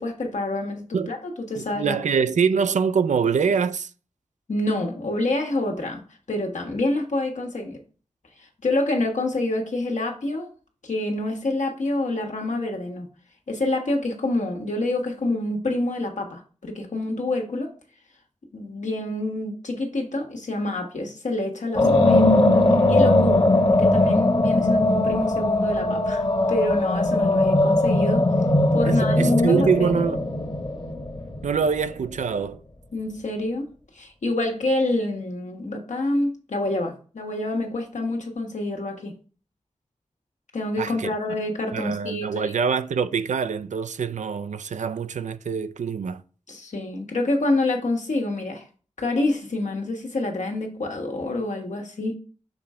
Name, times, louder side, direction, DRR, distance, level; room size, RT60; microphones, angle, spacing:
voice 1, 0.0-2.0 4.5-7.8 8.6-10.5 10.8-13.1 13.5-17.7 18.5-22.6 22.9-23.5 23.8-26.2 26.5-28.3 28.7-29.9 32.9-39.1 40.5-42.5 46.5-48.6 49.0-52.1, left 2 dB, 80° left, 1.4 m, -27 dB
voice 2, 1.6-3.9 28.9-30.2 31.4-32.6 40.8-41.1 41.7-46.2, right 6 dB, 80° right, 0.4 m, -24 dB
sound 1, 21.7-31.9, left 1 dB, 40° left, 1.2 m, -20 dB
6.1 x 3.6 x 4.3 m
cardioid pair, 45°, 12 cm